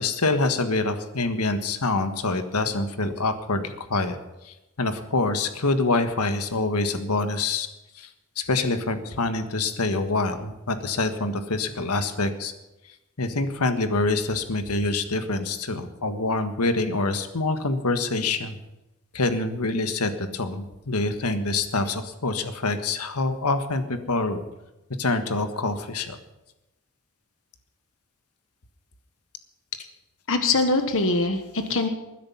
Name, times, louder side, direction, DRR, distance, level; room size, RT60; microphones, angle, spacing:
voice 1, 0.0-4.2 4.4-7.7 8.0-8.1 8.4-12.5 13.2-18.6 19.1-24.4 25.0-26.2, left 3 dB, 90° left, 8 dB, 1.6 m, -26 dB
voice 2, 30.3-31.9, left 3 dB, 65° left, 7 dB, 1.4 m, -23 dB
20.5 x 10.5 x 5.7 m, 0.98 s
head